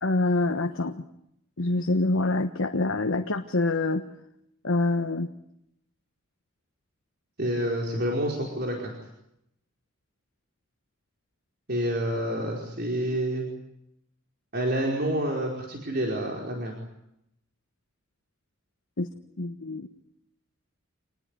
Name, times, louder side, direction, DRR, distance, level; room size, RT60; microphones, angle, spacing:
voice 1, 0.0-1.0 1.6-4.0 4.6-5.3 19.0-19.1 19.4-19.9, left 2 dB, 80° left, 6 dB, 1.3 m, -25 dB
voice 2, 7.4-8.9 11.7-13.5 14.5-16.7, right 1 dB, 50° right, 0 dB, 4.8 m, -28 dB
27.0 x 19.5 x 9.8 m, 0.79 s
head